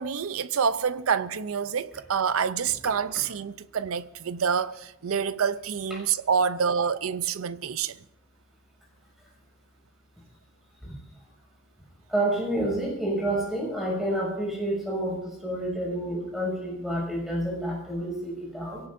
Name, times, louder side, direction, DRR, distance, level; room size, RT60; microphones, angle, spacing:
voice 1, 0.0-8.0, right 6 dB, 90° right, 0.5 m, -27 dB
voice 2, 12.1-18.8, right 1 dB, ahead, 6.5 m, -29 dB
23.5 x 17.0 x 2.6 m
head